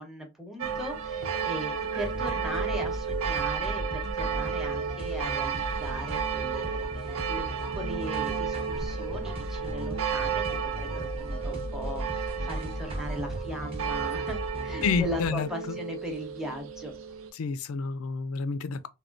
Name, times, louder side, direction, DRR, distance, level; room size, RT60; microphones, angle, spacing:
voice 1, 0.0-16.9, equal, ahead, 0.8 m, -38 dB
sound 1, 0.6-17.3, right 7 dB, 65° right, 0.5 m, -33 dB
sound 2, 2.0-15.3, equal, 25° right, 0.9 m, -36 dB
voice 2, 14.8-15.8 17.4-18.9, left 5 dB, 75° left, 0.4 m, -29 dB
3.5 x 2.2 x 2.4 m
head